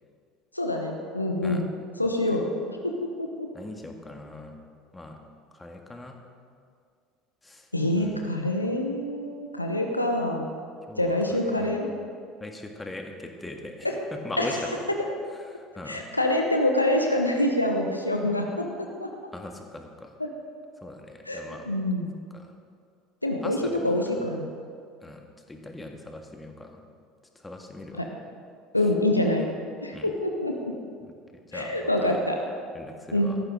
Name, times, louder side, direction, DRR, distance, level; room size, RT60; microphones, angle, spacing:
voice 1, 0.5-1.7 2.0-3.5 7.7-10.5 11.0-11.9 13.8-13.9 14.4-14.5 15.9-19.1 20.2-20.3 21.3-22.1 23.2-23.6 23.8-24.5 28.0-28.1 28.7-29.5 29.8-30.8 31.5-32.4 33.1-33.4, left 1 dB, 90° left, 2 dB, 1.0 m, -26 dB
voice 2, 3.5-4.5 4.9-5.2 5.5-6.2 7.4-8.3 10.9-11.9 12.4-14.8 15.3-16.0 19.3-20.1 20.8-21.6 22.3-22.5 23.4-24.1 25.0-26.8 27.3-28.1 29.9-30.1 31.0-31.7 32.0-32.2 32.7-33.4, left 2 dB, 15° left, 3 dB, 1.8 m, -40 dB
16.5 x 14.0 x 3.7 m, 2.2 s
figure-of-eight pair, 65°, 0 cm